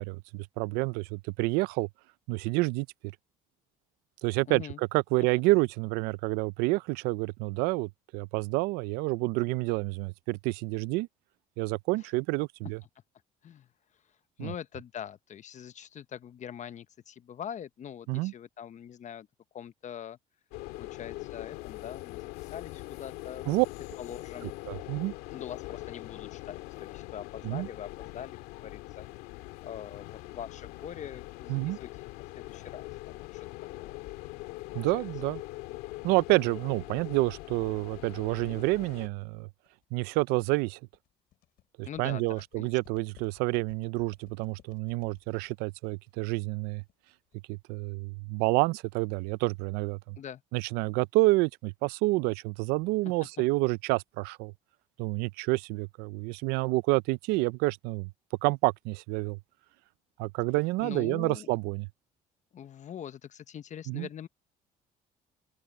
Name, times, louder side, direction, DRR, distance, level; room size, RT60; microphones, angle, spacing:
voice 1, 0.0-1.9 2.3-2.9 4.2-11.1 11.6-12.8 14.4-14.5 18.1-18.3 23.5-23.7 24.4-25.1 27.4-27.7 31.5-31.8 34.7-35.4 36.0-39.5 39.9-40.8 41.8-46.8 47.5-50.2 50.5-54.5 55.0-58.1 58.4-59.4 60.2-61.9 63.9-64.1, right 23 dB, 85° right, 0.5 m, -28 dB
voice 2, 4.5-4.8 13.4-13.7 14.4-19.3 19.5-20.2 20.8-23.5 24.0-24.5 25.3-29.1 29.6-32.0 32.4-33.5 33.8-34.0 34.7-35.1 41.9-42.7 50.2-50.4 53.0-53.1 60.8-61.5 62.5-64.3, left 9 dB, 50° left, 1.0 m, -43 dB
sound 1, 20.5-39.1, left 20 dB, 90° left, 2.0 m, -42 dB
sound 2, 35.9-47.5, left 13 dB, 70° left, 6.1 m, -62 dB
open air
supercardioid pair, 75°, 16 cm